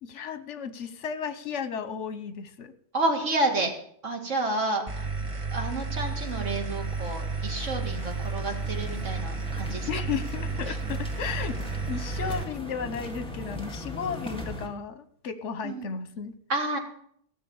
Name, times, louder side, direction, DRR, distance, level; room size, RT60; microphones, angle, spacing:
voice 1, 0.0-2.7 9.9-11.6 11.9-16.3, left 6 dB, 75° left, 12 dB, 1.3 m, -34 dB
voice 2, 2.9-3.7 4.0-4.8 5.5-9.9 10.7-10.8 15.6-15.9 16.5-16.8, right 2 dB, 90° right, 2 dB, 2.4 m, -29 dB
sound 1, 4.9-12.4, right 3 dB, 30° right, 0.8 m, -32 dB
sound 2, 5.0-14.7, left 1 dB, 5° left, 1.8 m, -41 dB
15.0 x 7.1 x 7.1 m, 0.64 s
omnidirectional pair, 1.2 m